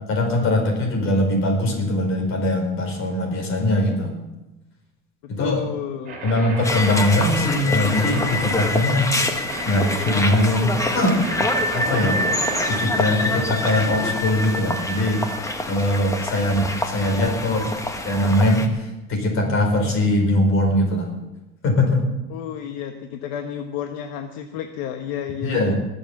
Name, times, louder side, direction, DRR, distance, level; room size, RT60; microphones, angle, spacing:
voice 1, 0.1-4.1 5.3-5.6 6.2-9.1 9.6-11.5 11.7-12.2 12.7-15.2 15.7-17.8 18.0-21.1 21.6-22.0 25.4-25.7, left 1 dB, 40° left, 2 dB, 4.5 m, -21 dB
voice 2, 5.2-6.2 22.3-25.7, left 9 dB, 65° left, 6 dB, 1.2 m, -31 dB
sound 1, 6.0-12.9, right 3 dB, 25° right, 3.9 m, -34 dB
sound 2, 6.6-18.7, left 2 dB, 10° left, 1.2 m, -26 dB
20.0 x 7.3 x 7.1 m, 1.0 s
cardioid pair, 145°, 31 cm